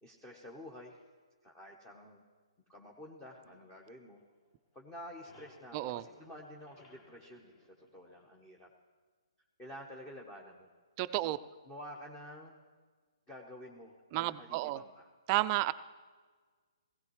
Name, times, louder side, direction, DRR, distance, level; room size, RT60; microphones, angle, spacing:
voice 1, 0.0-1.0 1.4-2.2 2.7-4.2 4.7-8.7 9.6-10.7 11.2-11.3 11.7-12.6 13.3-15.1, equal, 15° left, -1 dB, 1.1 m, -50 dB
sound 1, 3.4-4.6 4.9-8.6, left 2 dB, 30° left, 1.9 m, -62 dB
voice 2, 11.0-11.4 14.1-14.8 15.3-15.7, right 17 dB, 30° right, 14 dB, 0.4 m, -31 dB
17.5 x 16.0 x 3.2 m, 1.5 s
hypercardioid pair, 135°, 3 cm